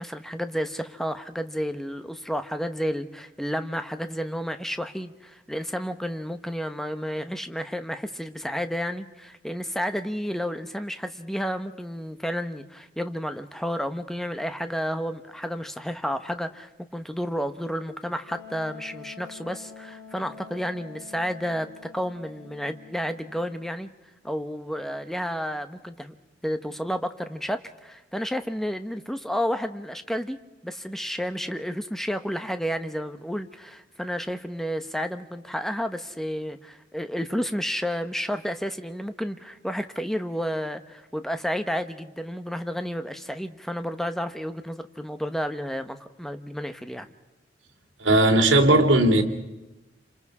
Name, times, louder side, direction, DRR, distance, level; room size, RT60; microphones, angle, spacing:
voice 1, 0.0-21.7 21.9-23.9 24.2-26.1 26.4-30.4 30.6-47.1, equal, ahead, 9 dB, 1.0 m, -31 dB
Wind instrument woodwind instrument, 18.3-23.8, left 6 dB, 85° left, 2.7 m, -46 dB
voice 2, 48.0-49.2, right 1 dB, 75° right, 3 dB, 2.7 m, -17 dB
28.5 x 26.5 x 4.8 m, 1.0 s
head